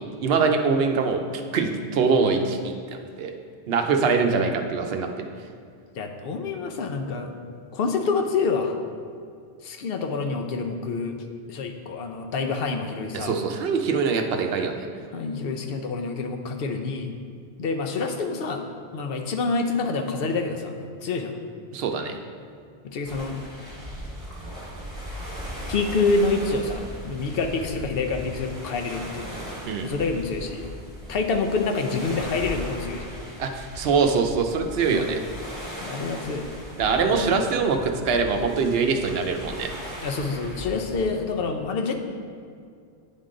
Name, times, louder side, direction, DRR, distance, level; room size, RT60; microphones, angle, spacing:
voice 1, 0.2-1.2 1.5-3.3 3.7-5.3 13.1-14.9 21.7-22.2 29.7-29.9 33.4-35.2 36.8-39.7, right 5 dB, 75° right, 5 dB, 0.8 m, -23 dB
voice 2, 6.0-7.3 7.7-8.8 9.6-11.2 11.5-13.4 15.1-17.1 17.6-18.6 18.9-20.7 21.0-21.4 22.8-23.4 25.7-29.3 29.8-30.7 31.1-33.1 34.9-35.1 35.8-36.4 37.0-37.4 40.0-41.9, left 4 dB, 70° left, 4 dB, 0.8 m, -27 dB
sound 1, 23.1-41.2, equal, 20° right, 1.5 m, -38 dB
9.4 x 3.7 x 3.7 m, 2.3 s
omnidirectional pair, 1.0 m